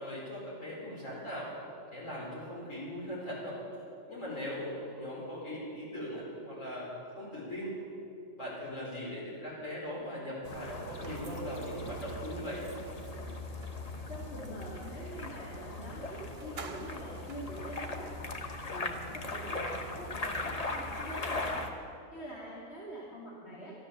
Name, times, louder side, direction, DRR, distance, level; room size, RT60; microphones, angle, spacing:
voice 1, 0.0-1.5 1.9-3.6 4.1-7.7 8.4-12.6, left 1 dB, 75° left, -6 dB, 5.1 m, -39 dB
sound 1, 10.4-21.7, left 2 dB, 30° left, 1.0 m, -39 dB
sound 2, 11.0-15.1 15.8-15.9 16.2-18.2, right 5 dB, 55° right, 1.1 m, -52 dB
voice 2, 14.1-18.2 18.7-21.6 22.1-23.7, right 1 dB, 55° left, -6 dB, 2.4 m, -44 dB
12.5 x 12.5 x 7.1 m, 2.7 s
omnidirectional pair, 1.4 m